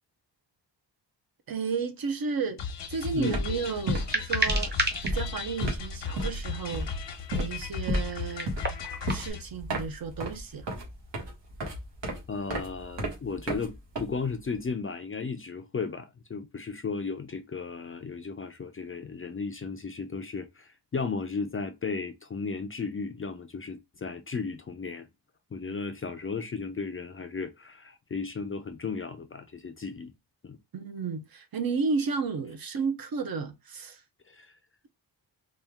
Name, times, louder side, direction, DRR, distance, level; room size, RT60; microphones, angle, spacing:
voice 1, 1.5-2.6 2.9-4.7 5.0-6.9 7.3-8.5 9.1-10.7 25.7-25.8 30.7-34.0, right 5 dB, 55° right, 0.7 m, -32 dB
sound 1, 2.6-9.4, left 6 dB, 85° left, 0.9 m, -37 dB
sound 2, 2.7-2.9 3.1-14.6, equal, 85° right, 1.5 m, -33 dB
sound 3, 4.0-5.1 6.1-6.2 8.1-9.3, right 2 dB, 25° right, 0.7 m, -30 dB
voice 2, 12.3-25.1 25.5-30.1 30.4-30.6 34.3-34.6, left 4 dB, 30° left, 0.4 m, -35 dB
4.2 x 2.3 x 3.5 m
wide cardioid pair, 180°, 43 cm